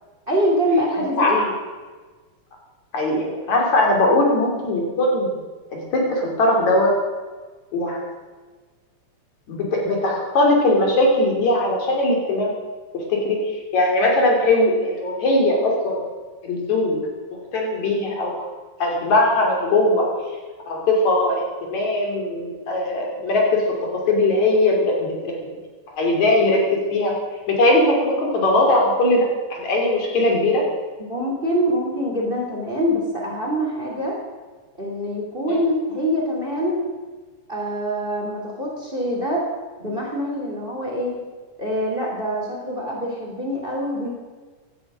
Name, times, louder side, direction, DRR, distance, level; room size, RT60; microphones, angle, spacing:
voice 1, 0.3-1.6 31.1-34.2 34.8-36.9 37.5-39.5 39.8-41.2 41.6-44.1, equal, 20° right, -1 dB, 2.6 m, -24 dB
voice 2, 1.2-1.5 2.9-5.4 5.7-6.9 7.7-8.1 9.5-12.5 13.2-16.1 16.4-17.0 17.5-18.4 18.8-20.1 20.7-23.6 24.1-25.3 26.0-27.1 27.5-30.7 35.5-35.6, left 1 dB, 65° left, 0 dB, 4.1 m, -20 dB
16.0 x 11.5 x 6.1 m, 1.4 s
omnidirectional pair, 3.5 m